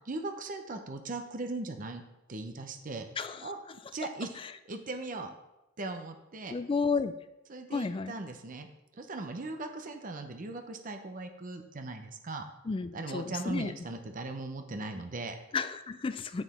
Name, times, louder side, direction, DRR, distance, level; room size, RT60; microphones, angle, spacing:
voice 1, 0.1-2.0 2.3-3.1 3.4-3.6 3.9-4.3 4.7-5.3 5.8-6.5 7.5-8.7 9.0-12.4 12.9-15.4, right 2 dB, 40° right, 6 dB, 0.7 m, -38 dB
voice 2, 3.2-3.8 4.4-4.5 6.5-7.1 7.7-8.1 12.6-13.8 15.5-16.4, left 4 dB, 25° left, 12 dB, 0.3 m, -32 dB
7.2 x 6.0 x 4.2 m, 0.95 s
head